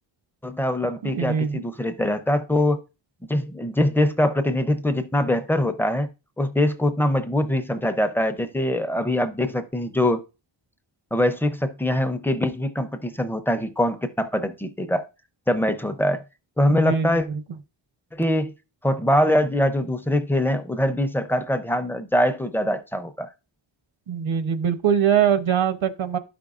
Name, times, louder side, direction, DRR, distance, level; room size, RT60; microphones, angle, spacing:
voice 1, 0.4-2.8 3.3-6.1 6.4-10.2 11.1-15.1 15.5-16.2 16.6-17.3 18.1-18.5 18.8-23.3, left 1 dB, 5° left, 0.4 m, -23 dB
voice 2, 1.0-1.6 16.7-17.4 24.1-26.2, right 8 dB, 80° right, 0.8 m, -23 dB
12.0 x 5.2 x 2.4 m
wide cardioid pair, 175°, 47 cm